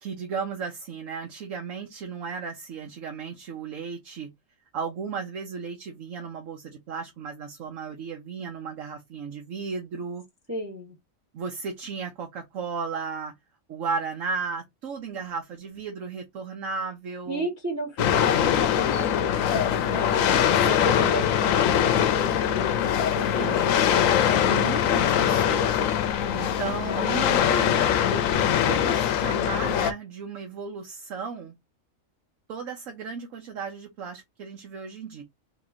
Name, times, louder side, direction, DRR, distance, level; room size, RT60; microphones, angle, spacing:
voice 1, 0.0-4.3 4.7-10.2 11.3-13.3 13.7-17.5 20.3-21.0 21.3-21.5 23.3-24.2 24.5-25.9 26.3-31.5 32.5-35.2, right 5 dB, 70° right, 1.1 m, -35 dB
voice 2, 10.5-10.9 17.3-23.8 24.2-24.7, equal, 15° right, 0.9 m, -33 dB
sound 1, 18.0-29.9, left 9 dB, 75° left, 1.0 m, -22 dB
3.0 x 2.9 x 3.6 m
omnidirectional pair, 1.4 m